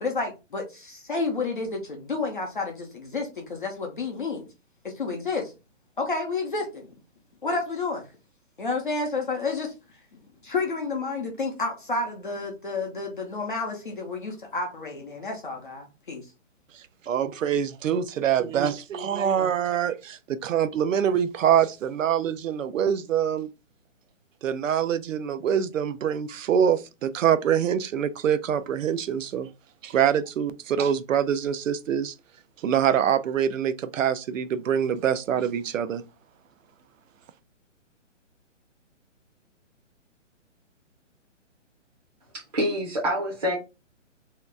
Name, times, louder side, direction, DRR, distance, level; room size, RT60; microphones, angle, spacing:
voice 1, 0.0-4.5 4.8-5.5 6.0-6.9 7.4-8.1 8.6-9.7 10.4-16.3, left 3 dB, 40° left, 0.6 m, -30 dB
voice 2, 17.1-23.5 24.4-29.5 29.8-32.1 32.6-36.0, right 8 dB, 90° right, 0.5 m, -25 dB
voice 3, 42.3-43.6, equal, 35° right, 0.6 m, -26 dB
2.8 x 2.3 x 3.2 m
hypercardioid pair, 180°, 38 cm